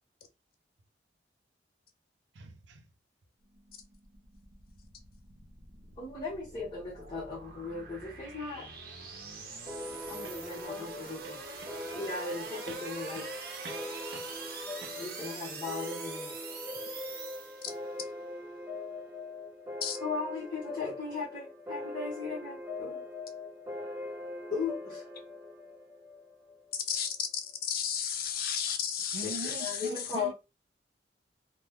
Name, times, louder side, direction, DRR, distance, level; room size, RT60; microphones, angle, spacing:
voice 1, 2.4-2.8 10.2-10.4 11.2-11.3 11.6-11.7 12.7-12.8 13.2-13.3 13.6-13.8 14.1-14.3 14.8-14.9 29.1-30.3, right 2 dB, 85° right, 0.6 m, -43 dB
sound 1, 3.4-18.0, right 4 dB, 55° right, 0.8 m, -45 dB
voice 2, 6.0-8.7 10.1-11.4 11.9-13.3 14.2-14.3 14.6-16.3 20.0-23.0 24.5-25.0 29.2-30.3, left 4 dB, 25° left, 1.2 m, -37 dB
sound 2, 9.7-26.8, left 2 dB, 10° right, 0.6 m, -42 dB
voice 3, 26.9-29.9, left 8 dB, 55° left, 0.5 m, -33 dB
3.0 x 2.2 x 3.5 m
head